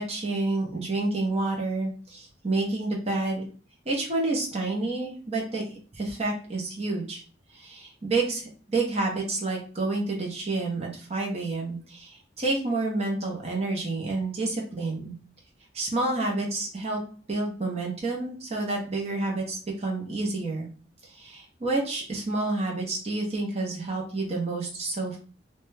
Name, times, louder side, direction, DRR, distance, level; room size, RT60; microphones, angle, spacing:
voice 1, 0.0-3.4 3.9-5.6 5.9-7.2 7.5-15.1 15.7-17.0 17.3-20.7 21.0-25.2, right 2 dB, 35° right, -1 dB, 0.6 m, -29 dB
2.9 x 2.2 x 3.2 m, 0.40 s
head